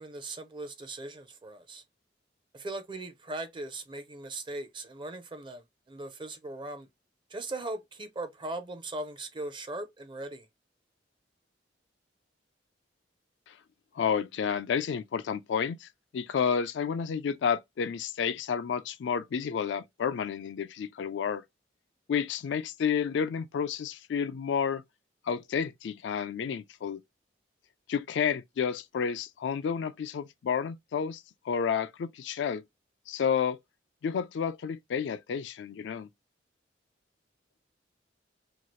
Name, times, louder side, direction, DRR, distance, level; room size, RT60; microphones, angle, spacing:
voice 1, 0.0-1.8 2.5-6.9 7.3-10.5, right 2 dB, 25° right, 0.5 m, -39 dB
voice 2, 14.0-15.9 16.1-21.4 22.1-24.8 25.3-27.0 27.9-32.6 33.1-33.6 34.0-36.1, left 7 dB, 75° left, 0.3 m, -30 dB
2.9 x 2.3 x 3.0 m
head